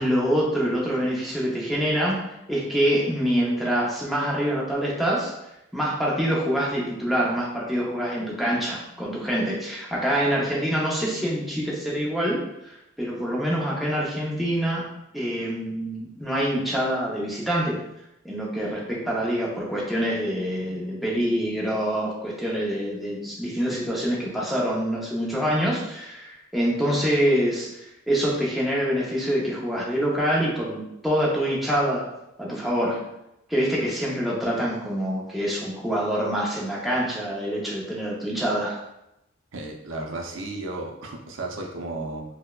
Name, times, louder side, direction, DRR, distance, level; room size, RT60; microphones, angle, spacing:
voice 1, 0.0-2.2 2.5-5.3 5.7-14.9 15.1-17.8 18.2-32.1 32.4-33.1 33.5-38.8, equal, ahead, -5 dB, 0.6 m, -25 dB
voice 2, 39.5-42.2, right 2 dB, 75° right, 1 dB, 0.5 m, -34 dB
4.3 x 2.1 x 2.3 m, 0.86 s
head